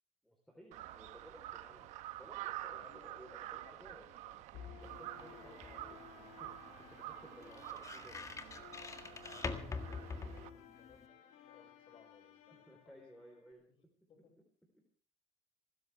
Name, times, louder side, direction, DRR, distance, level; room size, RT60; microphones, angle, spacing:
voice 1, 0.2-1.9 2.2-4.1 4.7-6.5 6.9-8.2 12.7-13.6, equal, ahead, 2 dB, 3.8 m, -57 dB
Crow, 0.7-10.5, right 15 dB, 85° right, 1.0 m, -48 dB
voice 2, 2.7-4.4 9.2-13.0 14.1-14.3, left 5 dB, 50° left, 3 dB, 6.1 m, -63 dB
sound 1, 4.5-13.5, left 9 dB, 80° left, 2.4 m, -57 dB
sound 2, 4.8-11.1, left 4 dB, 25° left, 1.7 m, -46 dB
26.0 x 13.5 x 3.4 m, 0.42 s
cardioid pair, 115°, 12 cm